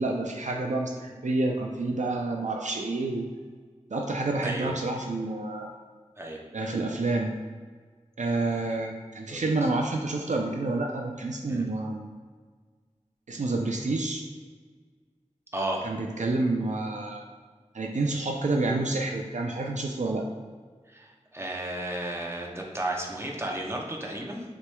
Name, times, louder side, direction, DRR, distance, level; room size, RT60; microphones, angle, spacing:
voice 1, 0.0-3.3 3.9-5.7 6.5-7.4 8.2-12.0 13.3-14.2 15.8-17.2 17.7-20.3, right 2 dB, 75° right, 1 dB, 0.4 m, -28 dB
voice 2, 15.5-15.9 20.9-24.4, right 1 dB, 20° right, -1 dB, 0.8 m, -33 dB
6.4 x 3.1 x 2.2 m, 1.5 s
wide cardioid pair, 45°, 13 cm